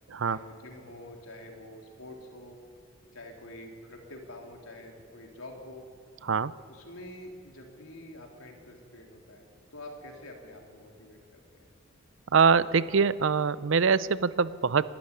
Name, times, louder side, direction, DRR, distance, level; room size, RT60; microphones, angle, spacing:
voice 1, 0.3-2.6 3.1-5.8 6.7-11.6, left 1 dB, 85° left, 1 dB, 3.4 m, -47 dB
voice 2, 12.3-14.8, right 5 dB, 65° right, 17 dB, 0.5 m, -24 dB
25.0 x 12.0 x 9.8 m, 2.3 s
head